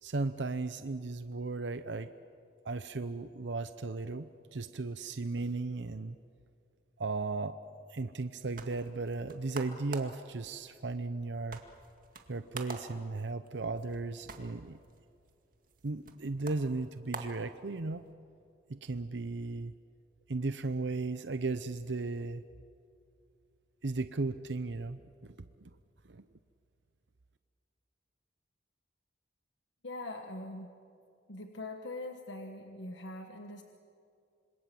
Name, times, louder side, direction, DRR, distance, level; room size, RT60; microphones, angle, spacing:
voice 1, 0.0-2.1 2.6-6.2 7.0-7.6 7.9-11.6 12.3-14.8 15.8-18.0 18.7-19.7 20.3-22.4 23.8-25.3 25.6-25.7 26.1-26.2, right 3 dB, 75° right, 11 dB, 0.7 m, -36 dB
sound 1, 8.2-18.1, right 3 dB, 50° right, 2.2 m, -49 dB
voice 2, 29.8-30.7 31.3-33.6, left 2 dB, 85° left, 5 dB, 1.4 m, -42 dB
26.5 x 26.0 x 7.7 m, 2.5 s
head